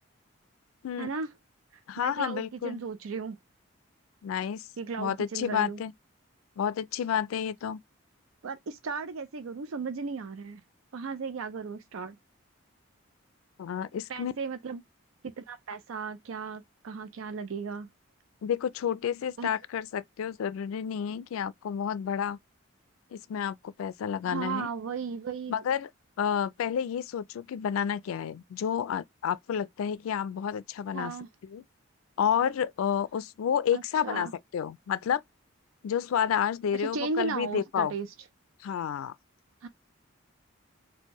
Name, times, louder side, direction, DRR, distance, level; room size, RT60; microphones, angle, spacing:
voice 1, 1.0-1.3 2.0-3.4 4.8-5.8 8.4-10.6 10.9-12.2 14.1-14.8 15.2-17.9 19.4-19.5 24.3-25.6 30.9-31.3 33.7-34.3 36.7-38.1 39.6-39.7, right 5 dB, 85° right, 0.5 m, -35 dB
voice 2, 1.9-2.8 4.2-4.7 5.0-5.9 6.6-7.8 13.6-14.3 18.4-22.4 23.1-24.7 25.5-25.9 26.2-31.1 31.4-31.6 32.2-35.2 35.8-37.9 38.6-39.1, left 8 dB, 85° left, 0.3 m, -30 dB
4.4 x 2.2 x 2.9 m
head